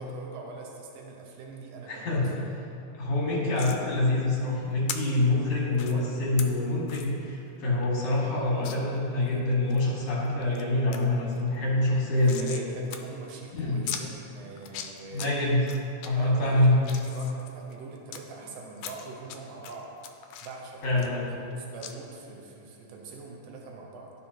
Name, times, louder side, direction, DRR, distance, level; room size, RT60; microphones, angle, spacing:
voice 1, 0.0-2.5 12.1-15.3 16.2-19.9 20.4-24.1, right 3 dB, 70° right, 0 dB, 1.9 m, -43 dB
voice 2, 1.9-2.3 2.9-12.5 13.5-13.8 15.1-15.7 16.0-16.8 20.8-21.3, left 2 dB, 60° left, -5 dB, 2.7 m, -26 dB
sound 1, 3.6-3.8 4.9-5.0 5.7-5.9 6.4-6.5 6.9-7.1 7.5-7.6 7.8-7.9 8.6-8.8 9.3-9.8 10.3-10.6 10.9-11.0 11.3-12.7 12.9-13.0 13.3-13.4 13.9-14.0 14.6-15.3 15.7-16.1 16.6-18.2 18.8-19.4 19.6-21.5 21.8-21.9, left 9 dB, 80° left, 1.8 m, -38 dB
12.5 x 4.8 x 2.9 m, 2.7 s
omnidirectional pair, 3.3 m